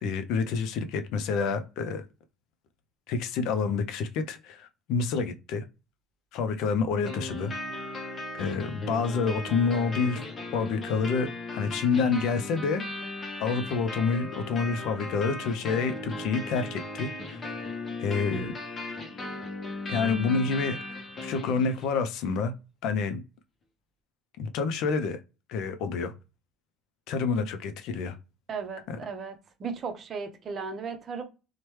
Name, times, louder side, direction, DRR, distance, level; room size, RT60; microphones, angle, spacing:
voice 1, 0.0-2.0 3.1-5.6 6.3-7.5 8.4-10.2 10.5-12.8 13.4-17.5 18.0-18.5 19.9-20.8 21.2-22.5 22.8-23.2 24.4-25.2 25.5-26.1 27.1-28.1 28.9-29.0, left 5 dB, 65° left, 0.4 m, -28 dB
sound 1, 7.0-22.0, left 2 dB, 30° left, 0.8 m, -37 dB
voice 2, 28.5-29.3 29.6-31.2, right 5 dB, 35° right, 0.6 m, -35 dB
3.1 x 2.1 x 3.0 m
cardioid pair, 135°, 0 cm